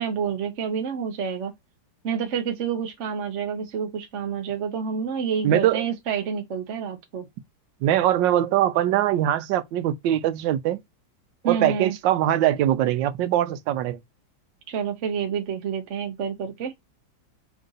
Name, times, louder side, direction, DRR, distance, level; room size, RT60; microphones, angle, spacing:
voice 1, 0.0-1.5 2.0-7.3 11.4-11.9 14.7-16.7, right 7 dB, 60° right, 0.8 m, -28 dB
voice 2, 5.4-5.9 7.8-10.8 11.4-14.0, right 12 dB, 85° right, 1.3 m, -22 dB
3.8 x 2.5 x 3.8 m
omnidirectional pair, 2.0 m